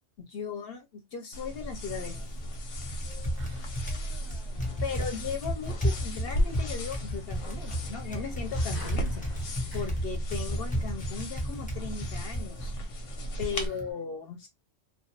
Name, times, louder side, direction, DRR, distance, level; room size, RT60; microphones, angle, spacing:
voice 1, 0.2-2.3 4.8-12.7 13.4-14.5, left 6 dB, 65° left, 0.7 m, -37 dB
sound 1, 1.3-13.7, left 1 dB, 90° left, 1.0 m, -36 dB
Typing, 1.5-13.9, equal, 10° left, 0.4 m, -35 dB
voice 2, 3.4-5.0 13.5-14.3, right 5 dB, 60° right, 0.7 m, -55 dB
Sliding door, 5.4-11.0, right 1 dB, 20° right, 0.8 m, -49 dB
2.3 x 2.1 x 2.7 m
omnidirectional pair, 1.3 m